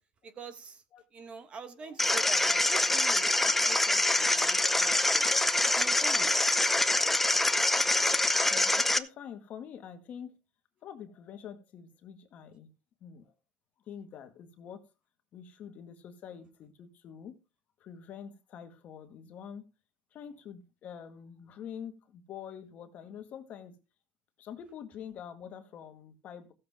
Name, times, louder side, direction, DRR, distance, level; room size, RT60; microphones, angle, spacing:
voice 1, 0.4-0.8 1.1-4.0 4.3-5.2 5.8-6.3, right 5 dB, 30° right, 1.4 m, -44 dB
voice 2, 1.7-2.2 2.8-2.9 3.4-3.6 8.5-10.4 10.8-12.7 13.0-13.3 13.9-14.9 15.3-17.4 17.8-19.6 20.1-23.8 24.4-26.5, left 8 dB, 40° left, 1.8 m, -46 dB
sound 1, 2.0-9.0, left 2 dB, 5° left, 0.6 m, -25 dB
15.0 x 7.5 x 3.6 m
cardioid pair, 145°, 4 cm